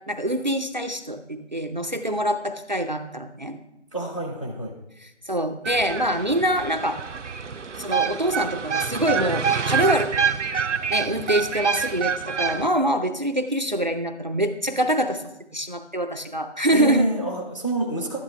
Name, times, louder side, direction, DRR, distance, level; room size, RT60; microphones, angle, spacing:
voice 1, 0.1-3.6 5.0-7.0 7.8-10.3 10.9-15.2 15.5-17.1, right 1 dB, 40° right, 6 dB, 0.5 m, -25 dB
voice 2, 3.9-4.7 16.7-18.2, right 2 dB, 25° left, -1 dB, 0.6 m, -27 dB
sound 1, 5.6-12.7, right 6 dB, 90° right, 0.6 m, -27 dB
12.0 x 10.0 x 3.3 m, 0.85 s
figure-of-eight pair, 160°, 35 cm